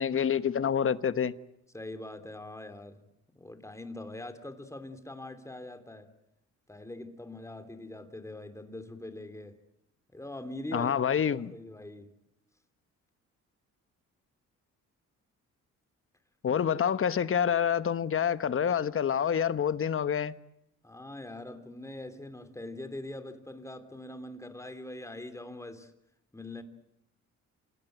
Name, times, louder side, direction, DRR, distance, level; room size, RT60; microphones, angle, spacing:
voice 1, 0.0-1.3 10.7-11.5 16.4-20.3, left 8 dB, 45° left, 1.2 m, -27 dB
voice 2, 1.7-3.0 3.3-6.1 6.7-9.6 10.1-10.9 11.3-12.1 20.8-25.9 26.3-26.6, left 1 dB, 10° left, 3.1 m, -42 dB
27.5 x 18.0 x 9.1 m
cardioid pair, 90°, 30 cm